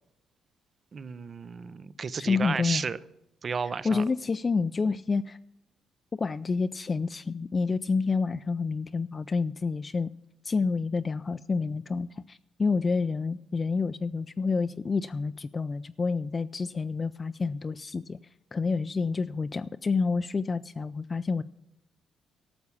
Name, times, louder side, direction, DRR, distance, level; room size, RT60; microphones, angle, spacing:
voice 1, 0.9-3.0 3.4-4.0, right 5 dB, 40° right, 16 dB, 0.5 m, -33 dB
voice 2, 2.2-2.8 3.8-5.4 6.1-10.1 10.4-18.2 18.5-21.4, left 4 dB, 30° left, 10 dB, 0.3 m, -28 dB
13.0 x 7.1 x 8.5 m, 0.85 s
cardioid pair, 90°, 0 cm